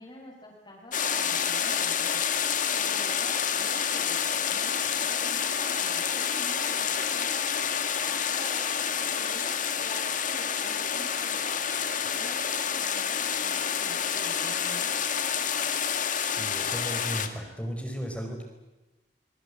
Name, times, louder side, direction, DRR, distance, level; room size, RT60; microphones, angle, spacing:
voice 1, 0.0-2.2 2.7-4.2 4.5-7.5 8.0-8.7 9.0-11.6 12.0-15.0, equal, 30° left, -3 dB, 5.5 m, -47 dB
sound 1, 0.9-17.3, left 7 dB, 50° left, 2.0 m, -28 dB
voice 2, 16.2-18.4, equal, 5° left, 3 dB, 4.6 m, -35 dB
25.5 x 22.5 x 8.4 m, 1.0 s
head